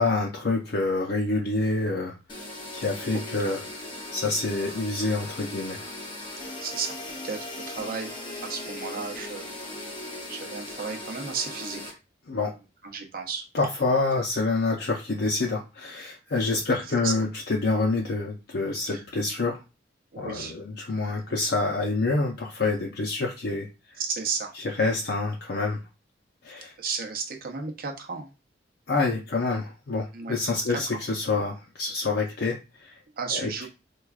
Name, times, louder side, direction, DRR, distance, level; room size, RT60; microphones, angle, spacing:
voice 1, 0.0-3.6 4.1-5.8 12.3-12.5 13.5-19.6 20.2-24.0 24.6-25.8 26.4-26.7 28.9-33.0 33.3-33.4, left 3 dB, 65° left, 0 dB, 0.6 m, -27 dB
sound 1, 2.3-11.9, left 2 dB, 25° left, 0.8 m, -38 dB
voice 2, 6.6-7.0 7.2-8.1 8.4-9.5 10.3-12.0 12.8-13.4 17.0-17.1 18.8-19.0 20.1-20.5 21.2-21.5 24.0-24.5 26.8-28.3 30.1-30.4 30.7-31.0 33.1-33.7, right 5 dB, 55° right, 2 dB, 0.8 m, -33 dB
4.5 x 2.3 x 2.3 m, 0.28 s
head